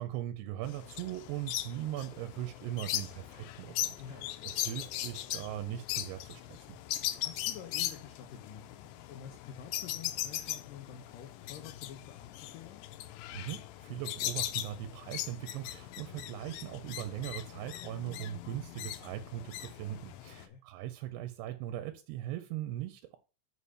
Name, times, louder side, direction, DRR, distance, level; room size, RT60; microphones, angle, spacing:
voice 1, 0.0-4.0 4.4-6.8 13.3-23.2, right 12 dB, 80° right, 2.7 m, -40 dB
sound 1, 0.6-20.5, left 14 dB, 85° left, 2.9 m, -39 dB
voice 2, 4.0-4.5 7.1-12.8 20.2-20.6, left 8 dB, 70° left, 2.2 m, -49 dB
8.5 x 4.9 x 5.6 m
omnidirectional pair, 4.9 m